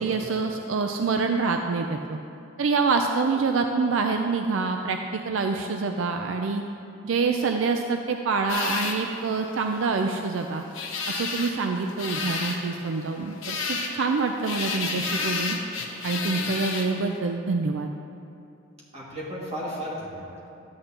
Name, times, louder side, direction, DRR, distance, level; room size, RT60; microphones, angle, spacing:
voice 1, 0.0-2.2 2.6-6.6 7.0-10.6 11.1-15.6 16.0-17.9, right 4 dB, 70° right, 5 dB, 0.4 m, -26 dB
sound 1, 8.5-17.2, left 4 dB, 75° left, 1.0 m, -32 dB
voice 2, 18.9-20.5, equal, 30° right, -6 dB, 2.1 m, -35 dB
11.5 x 8.7 x 2.9 m, 2.7 s
head